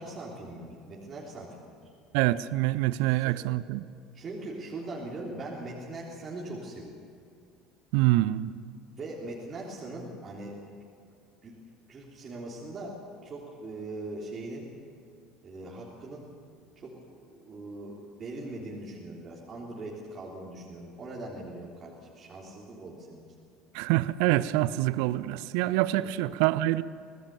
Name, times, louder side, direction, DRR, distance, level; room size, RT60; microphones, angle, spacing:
voice 1, 0.0-1.7 3.1-3.4 4.1-7.0 9.0-10.6 11.4-11.5 11.9-14.7 15.4-16.3 16.8-23.2, right 2 dB, 30° right, 3.6 m, -41 dB
voice 2, 2.1-3.8 7.9-8.5 23.7-26.8, right 16 dB, 60° right, 0.5 m, -25 dB
24.5 x 18.0 x 6.9 m
figure-of-eight pair, 65°, 0 cm